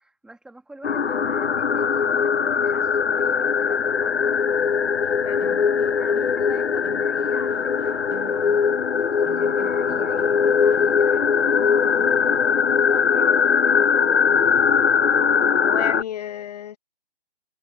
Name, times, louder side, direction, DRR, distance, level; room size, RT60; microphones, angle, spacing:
voice 1, 0.0-4.4 5.9-14.2, right 2 dB, ahead, 2.9 m, -45 dB
sound 1, 0.8-16.0, left 6 dB, 90° left, 0.7 m, -20 dB
sound 2, 5.0-10.9, right 20 dB, 20° right, 2.7 m, -46 dB
voice 2, 5.2-5.9 15.6-16.8, left 10 dB, 40° left, 1.1 m, -33 dB
figure-of-eight pair, 145°, 32 cm